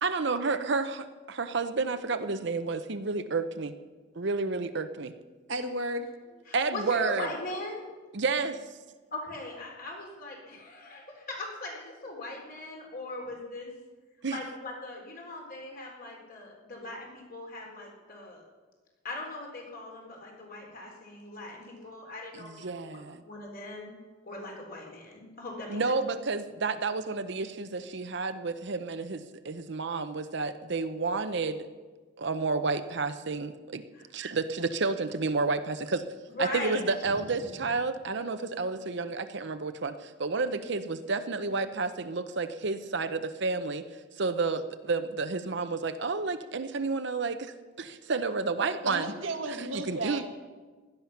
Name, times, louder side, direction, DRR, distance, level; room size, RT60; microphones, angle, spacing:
voice 1, 0.0-3.7 4.2-5.1 6.5-7.3 8.1-8.6 14.2-14.4 22.3-23.2 25.7-31.7 32.2-33.8 34.1-36.0 36.4-43.8 44.2-49.1 49.6-50.2, right 4 dB, 65° right, 10 dB, 0.8 m, -30 dB
voice 2, 5.5-6.3 48.8-50.2, right 2 dB, 85° right, 5 dB, 1.7 m, -33 dB
voice 3, 6.5-7.8 9.1-13.7 14.3-18.4 19.0-23.9 24.2-25.8 33.9-34.1 36.4-37.1 37.4-37.5, left 2 dB, 50° left, 0 dB, 3.9 m, -40 dB
16.5 x 12.0 x 5.8 m, 1.3 s
head